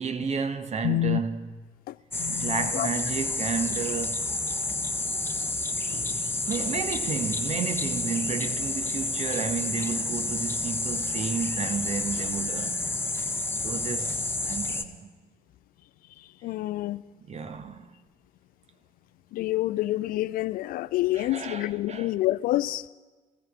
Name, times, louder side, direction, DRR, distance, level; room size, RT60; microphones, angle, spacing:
voice 1, 0.0-1.6 2.3-4.2 5.9-12.8 13.5-15.1 17.3-17.9 21.1-22.1, right 6 dB, 40° right, 1.0 m, -32 dB
voice 2, 0.8-1.2 1.9-2.9 16.4-17.0 19.3-22.9, left 16 dB, 55° left, 0.4 m, -28 dB
sound 1, 2.1-14.8, left 2 dB, 10° left, 1.0 m, -30 dB
25.0 x 15.0 x 2.4 m
figure-of-eight pair, 40°, 18 cm